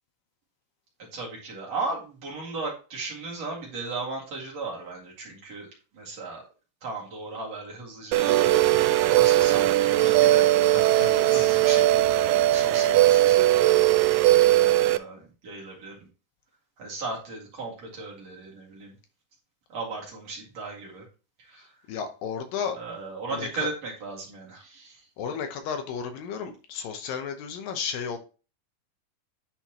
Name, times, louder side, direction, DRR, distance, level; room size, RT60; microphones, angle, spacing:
voice 1, 1.1-6.5 6.8-10.8 11.3-13.8 14.2-16.1 16.8-19.0 19.7-21.0 21.4-21.7 22.8-25.1, right 3 dB, 50° right, -3 dB, 2.8 m, -36 dB
sound 1, 8.1-15.0, right 15 dB, 85° right, 2.0 m, -19 dB
voice 2, 10.7-11.5 12.7-13.2 21.5-22.8 23.3-23.7 25.2-28.2, left 7 dB, 75° left, 6 dB, 2.4 m, -34 dB
10.0 x 4.4 x 2.9 m, 0.33 s
omnidirectional pair, 4.3 m